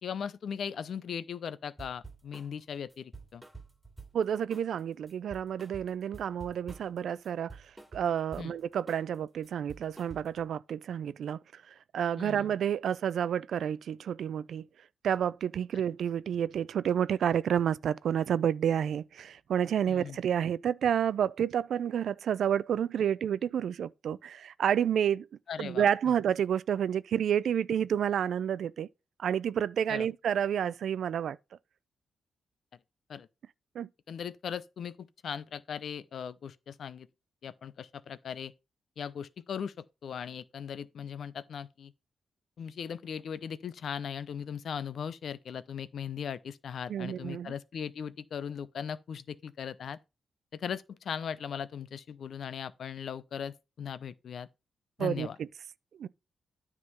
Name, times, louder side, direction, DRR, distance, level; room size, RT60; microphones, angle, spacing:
voice 1, 0.0-3.4 8.4-8.5 12.2-12.5 19.9-20.2 25.5-25.8 29.9-30.1 33.1-33.3 34.1-37.1 37.4-38.5 39.0-41.9 42.6-50.0 50.5-54.5 55.0-55.4, left 7 dB, 70° left, 0.6 m, -38 dB
sound 1, 1.8-2.5 2.9-4.2 4.5-4.8 5.1-7.0 7.2-8.5 8.9-9.1 9.4-10.5, right 3 dB, 10° right, 2.6 m, -48 dB
voice 2, 4.1-7.6 7.9-11.6 11.9-14.7 15.0-25.3 25.6-28.9 29.2-31.4 33.8-33.9 46.9-47.5 55.0-55.5 56.0-56.1, right 9 dB, 75° right, 0.4 m, -30 dB
9.6 x 3.7 x 5.5 m
cardioid pair, 80°, 0 cm